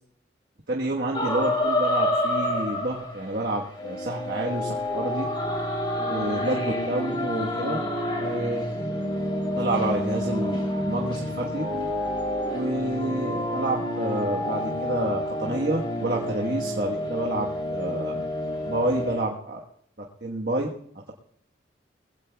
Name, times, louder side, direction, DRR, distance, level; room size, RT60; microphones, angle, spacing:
voice 1, 0.7-5.2 6.1-7.8 8.2-8.6 9.5-11.6 12.5-18.2 18.6-19.6 20.0-20.7, right 1 dB, 55° right, -1 dB, 1.3 m, -29 dB
sound 1, 1.1-3.3 3.8-19.2, left 1 dB, 30° left, 3.2 m, -28 dB
21.5 x 16.0 x 2.3 m, 0.67 s
head